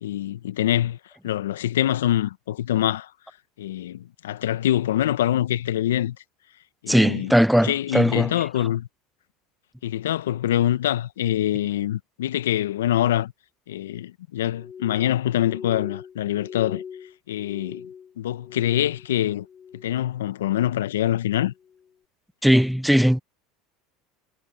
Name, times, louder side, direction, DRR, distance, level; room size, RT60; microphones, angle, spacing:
voice 1, 0.0-1.0 1.2-3.1 3.6-6.2 6.8-7.3 7.6-8.9 9.8-13.3 13.7-16.8 17.3-17.8 18.2-19.5 19.8-21.5, left 12 dB, 80° left, 1.0 m, -24 dB
voice 2, 6.9-8.4 22.4-23.2, equal, ahead, 0.4 m, -19 dB
Glass, 14.5-19.1 19.4-20.1 20.4-21.0 21.6-21.9, left 7 dB, 35° left, 5.4 m, -41 dB
hypercardioid pair, 85°, 0 cm